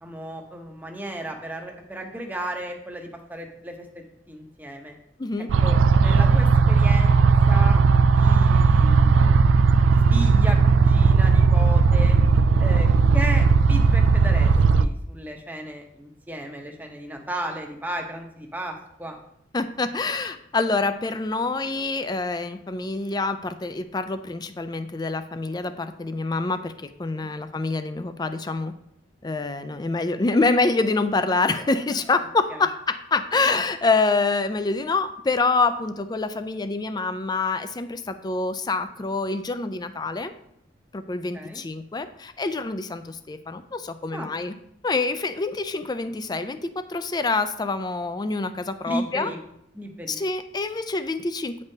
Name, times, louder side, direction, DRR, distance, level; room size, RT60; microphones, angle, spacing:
voice 1, 0.0-5.0 5.6-7.8 8.1-9.5 9.8-12.2 12.6-12.9 13.1-19.2 27.2-27.3 32.5-32.6 41.3-41.6 44.1-44.3 48.9-49.4 49.7-50.2, right 1 dB, 10° right, 2 dB, 0.8 m, -34 dB
sound 1, 5.5-14.8, right 5 dB, 85° right, 0.3 m, -17 dB
voice 2, 19.5-28.7 29.2-40.3 40.9-44.5 44.8-49.3 50.1-51.6, left 3 dB, 20° left, 10 dB, 0.4 m, -26 dB
9.2 x 5.3 x 2.7 m, 0.74 s
head